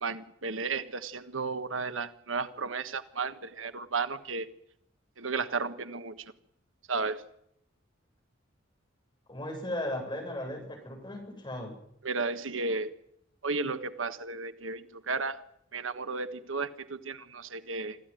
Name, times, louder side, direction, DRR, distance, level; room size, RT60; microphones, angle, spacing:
voice 1, 0.0-4.5 5.2-6.2 6.9-7.2 12.0-12.9 13.4-15.4 15.7-18.0, right 4 dB, 90° right, 11 dB, 1.4 m, -33 dB
voice 2, 9.3-11.8, left 1 dB, 25° left, 3 dB, 7.9 m, -36 dB
26.0 x 15.0 x 9.3 m, 0.74 s
head